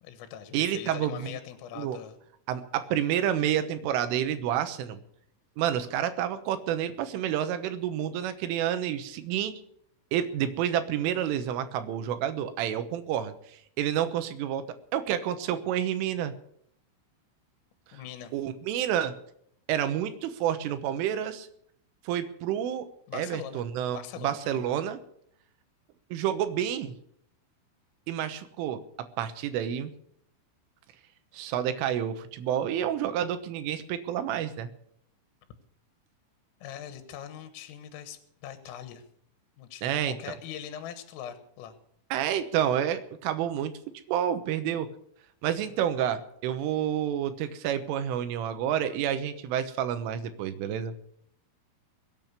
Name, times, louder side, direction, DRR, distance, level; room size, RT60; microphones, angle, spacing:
voice 1, 0.0-2.2 17.9-18.3 23.1-23.6 23.9-24.6 36.6-39.0 39.6-41.8 45.6-45.7, left 9 dB, 85° left, 9 dB, 3.9 m, -42 dB
voice 2, 0.5-1.4 1.8-2.0 2.5-5.0 5.6-9.5 10.1-13.3 13.8-14.7 14.9-16.3 18.3-19.1 19.7-21.5 22.1-22.9 23.1-25.0 26.1-26.9 28.1-28.8 29.2-29.9 31.3-34.7 39.8-40.2 42.1-43.7 44.1-44.9 45.4-50.9, right 10 dB, 80° right, 10 dB, 3.6 m, -29 dB
22.5 x 9.1 x 6.7 m, 0.68 s
omnidirectional pair, 5.8 m